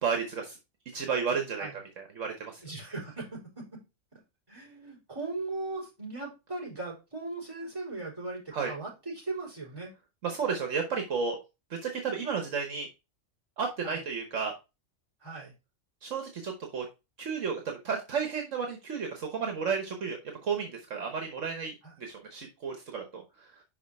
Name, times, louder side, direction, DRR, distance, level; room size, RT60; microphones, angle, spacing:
voice 1, 0.0-0.6 0.9-1.7 2.0-2.6 8.5-8.7 10.2-11.4 11.7-12.9 13.6-14.5 16.0-16.9 17.2-23.5, right 5 dB, 70° right, 4 dB, 1.4 m, -32 dB
voice 2, 2.6-3.8 4.1-4.2 4.5-9.9 13.8-14.0 15.2-15.5 21.8-21.9, right 3 dB, 15° right, -6 dB, 4.6 m, -38 dB
5.8 x 5.3 x 4.1 m, 0.27 s
omnidirectional pair, 1.4 m